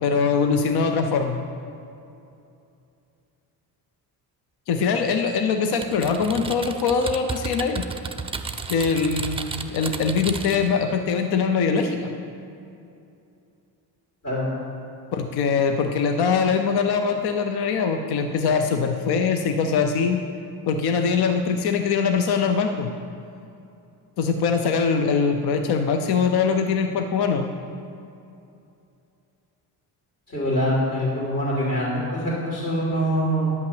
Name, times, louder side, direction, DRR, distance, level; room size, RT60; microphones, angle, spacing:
voice 1, 0.0-1.4 4.7-7.8 8.7-12.1 15.1-20.2 20.7-22.9 24.2-27.5, left 5 dB, 65° left, 6 dB, 0.7 m, -22 dB
Typing, 5.8-10.7, right 4 dB, 15° right, 0.5 m, -33 dB
voice 2, 30.3-33.6, equal, 45° left, -6 dB, 2.9 m, -24 dB
10.5 x 5.8 x 7.7 m, 2.7 s
cardioid pair, 105°, 41 cm